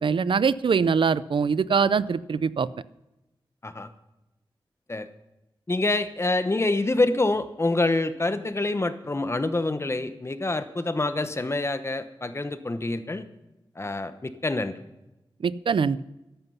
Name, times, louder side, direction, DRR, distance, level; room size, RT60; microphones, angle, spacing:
voice 1, 0.0-2.7 15.4-16.0, right 6 dB, 70° right, 18 dB, 0.5 m, -23 dB
voice 2, 5.7-13.3 13.8-14.7, left 2 dB, 30° left, 10 dB, 1.0 m, -26 dB
14.0 x 11.0 x 5.5 m, 0.95 s
wide cardioid pair, 85°, 9 cm